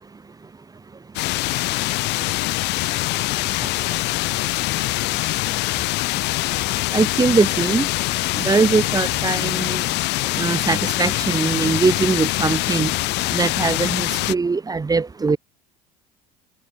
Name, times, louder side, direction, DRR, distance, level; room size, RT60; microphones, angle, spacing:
sound 1, 1.2-14.4, left 20 dB, 55° left, 3.6 m, -23 dB
voice 1, 6.9-7.9 8.3-9.8 10.4-12.9 13.3-15.4, right 4 dB, 15° right, 1.4 m, -21 dB
figure-of-eight pair, 70°, 21 cm